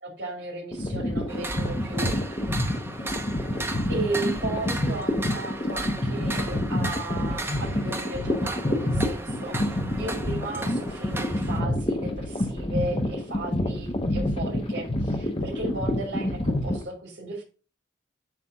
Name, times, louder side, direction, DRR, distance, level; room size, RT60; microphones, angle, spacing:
voice 1, 0.0-2.1 3.9-17.4, right 2 dB, 75° right, -4 dB, 2.6 m, -35 dB
sound 1, 0.7-16.8, left 1 dB, 30° left, 1.2 m, -28 dB
sound 2, 1.3-11.6, right 2 dB, 15° right, 0.9 m, -36 dB
8.1 x 3.4 x 5.9 m, 0.36 s
head